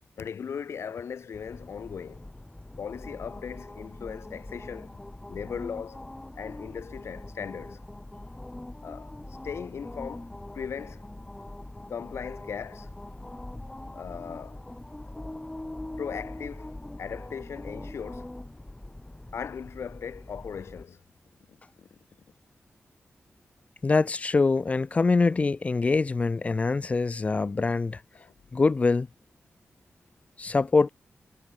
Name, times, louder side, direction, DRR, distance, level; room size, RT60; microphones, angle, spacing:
voice 1, 0.2-2.3 2.8-5.0 5.3-6.1 6.4-7.8 8.8-9.1 9.4-11.0 11.9-12.9 13.9-14.6 16.0-18.3 19.3-21.0 21.5-22.0 28.1-28.3, left 7 dB, 80° left, 3.1 m, -38 dB
sound 1, 1.3-20.8, left 1 dB, 10° left, 4.2 m, -42 dB
voice 2, 23.8-28.0 28.5-29.1 30.4-30.9, left 3 dB, 30° left, 0.9 m, -24 dB
wide cardioid pair, 170°, 4 cm